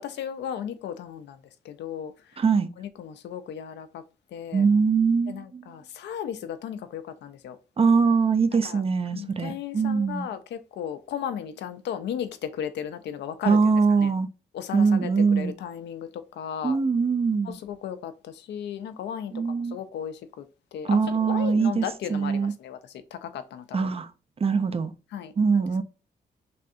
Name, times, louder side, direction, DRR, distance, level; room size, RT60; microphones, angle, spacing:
voice 1, 0.0-1.4 1.6-2.1 2.8-4.0 4.3-4.6 5.3-7.6 8.6-8.8 9.1-13.6 14.0-14.1 14.5-16.1 16.4-16.8 17.5-20.4 20.7-22.8 23.1-23.9 25.1-25.6, left 9 dB, 80° left, 0.4 m, -35 dB
voice 2, 2.4-2.7 4.5-5.6 7.8-10.3 13.4-14.3 14.7-15.5 16.6-17.6 19.3-19.8 20.8-21.8 22.1-22.5 23.7-24.1 24.4-24.9 25.4-25.8, right 5 dB, 35° right, 0.4 m, -22 dB
3.3 x 2.6 x 2.5 m
cardioid pair, 60°, 18 cm